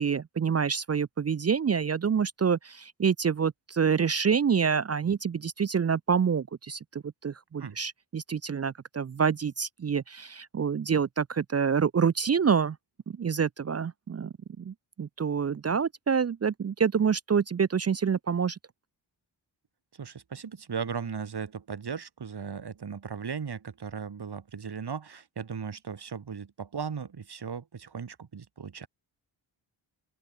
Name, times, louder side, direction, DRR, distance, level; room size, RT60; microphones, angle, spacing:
voice 1, 0.0-12.8 13.2-18.6, right 6 dB, 35° right, 0.6 m, -27 dB
voice 2, 20.0-28.9, right 6 dB, 55° right, 3.4 m, -37 dB
open air
cardioid pair, 60°, 46 cm